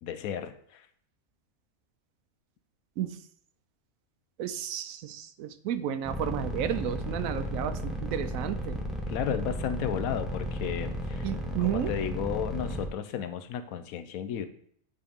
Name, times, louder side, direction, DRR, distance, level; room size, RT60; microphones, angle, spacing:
voice 1, 0.0-0.8 9.1-11.3 11.6-14.5, left 9 dB, 90° left, 10 dB, 1.1 m, -33 dB
voice 2, 4.4-8.8 9.3-9.4 11.2-11.9, right 10 dB, 80° right, 11 dB, 1.0 m, -32 dB
sound 1, 6.1-12.9, equal, ahead, 0.6 m, -34 dB
9.6 x 3.4 x 3.5 m, 0.64 s
omnidirectional pair, 1.4 m